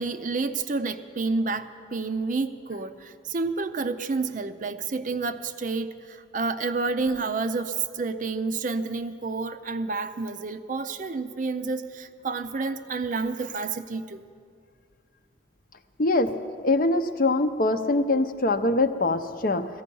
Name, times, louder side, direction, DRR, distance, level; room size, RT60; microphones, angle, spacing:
voice 1, 0.0-14.2, right 3 dB, 40° right, 10 dB, 0.5 m, -29 dB
voice 2, 16.0-16.3 16.6-19.7, left 2 dB, 45° left, 9 dB, 0.6 m, -23 dB
17.5 x 15.0 x 5.4 m, 2.2 s
head